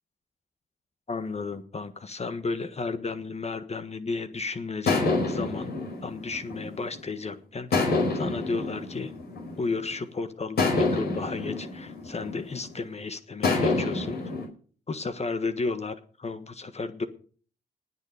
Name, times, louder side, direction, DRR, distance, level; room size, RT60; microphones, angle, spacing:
voice 1, 1.1-5.7 6.0-7.7 8.1-9.1 9.6-14.2 14.9-17.1, left 4 dB, 40° left, 10 dB, 1.4 m, -33 dB
sound 1, 4.9-7.1 7.7-9.9 10.6-12.8 13.4-14.5, left 3 dB, 65° left, 4.9 m, -28 dB
19.5 x 7.0 x 5.0 m, 0.43 s
supercardioid pair, 50°, 18 cm